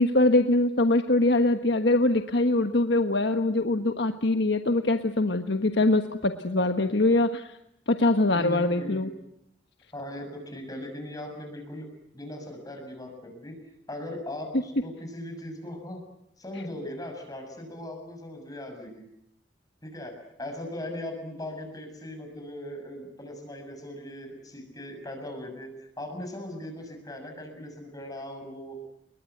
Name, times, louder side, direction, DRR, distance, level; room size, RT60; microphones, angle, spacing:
voice 1, 0.0-7.5 7.9-9.1, left 2 dB, 70° left, 7 dB, 1.4 m, -23 dB
voice 2, 6.6-7.0 8.3-9.1 9.9-11.9 12.1-13.5 13.9-16.0 16.4-19.1 19.8-28.8, left 1 dB, 20° left, 5 dB, 6.7 m, -39 dB
29.5 x 22.5 x 8.1 m, 0.79 s
head